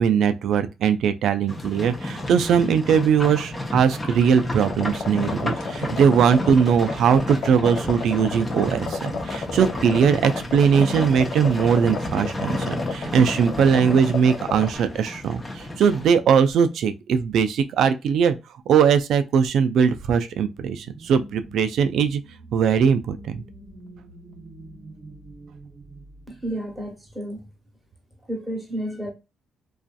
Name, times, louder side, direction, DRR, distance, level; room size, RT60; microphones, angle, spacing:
voice 1, 0.0-18.4 18.7-22.2 22.5-23.4, right 7 dB, 75° right, 0.3 m, -20 dB
Livestock farm animals working animals, 1.5-16.1, left 1 dB, 20° left, 0.7 m, -32 dB
sound 1, 4.6-14.7, left 5 dB, 65° left, 0.4 m, -33 dB
sound 2, 20.7-27.2, right 2 dB, 25° right, 0.7 m, -45 dB
voice 2, 26.3-27.4 28.3-29.1, right 1 dB, ahead, 1.1 m, -31 dB
2.5 x 2.4 x 2.3 m
cardioid pair, 90°, 0 cm